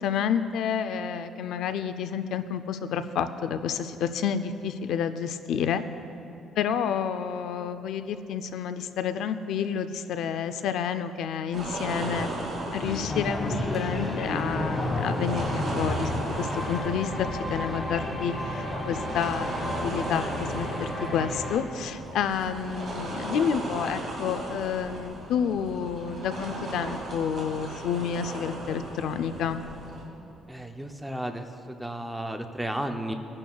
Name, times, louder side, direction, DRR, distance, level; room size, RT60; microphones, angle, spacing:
voice 1, 0.0-5.8 6.6-29.6, left 7 dB, 70° left, 10 dB, 0.4 m, -30 dB
sound 1, 11.5-30.0, right 2 dB, 35° right, 2.3 m, -37 dB
sound 2, 12.8-21.6, left 1 dB, 15° left, 1.4 m, -31 dB
voice 2, 30.5-33.1, right 1 dB, 5° right, 5 dB, 0.5 m, -33 dB
20.0 x 10.5 x 2.3 m, 2.9 s
cardioid pair, 170°, 0 cm